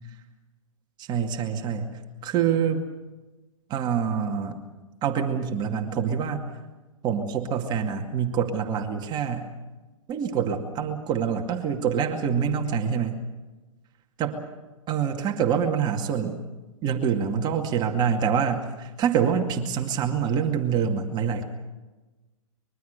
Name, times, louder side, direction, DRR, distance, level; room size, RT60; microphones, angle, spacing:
voice 1, 1.0-1.9 2.2-2.8 3.7-4.5 5.0-6.4 7.0-9.5 10.1-13.2 14.2-14.3 14.9-16.4 16.8-21.4, right 7 dB, 25° right, 3 dB, 2.3 m, -26 dB
24.5 x 22.5 x 6.9 m, 1.2 s
hypercardioid pair, 130°, 18 cm